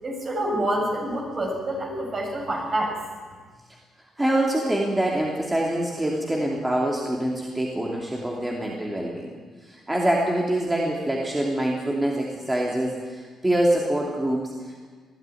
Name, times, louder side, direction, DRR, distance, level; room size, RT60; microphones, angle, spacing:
voice 1, 0.0-3.0, right 1 dB, 40° right, 0 dB, 7.3 m, -27 dB
voice 2, 4.2-9.3 9.6-14.9, right 1 dB, 10° right, -2 dB, 2.8 m, -25 dB
20.5 x 13.0 x 9.9 m, 1.5 s
cardioid pair, 90°, 0 cm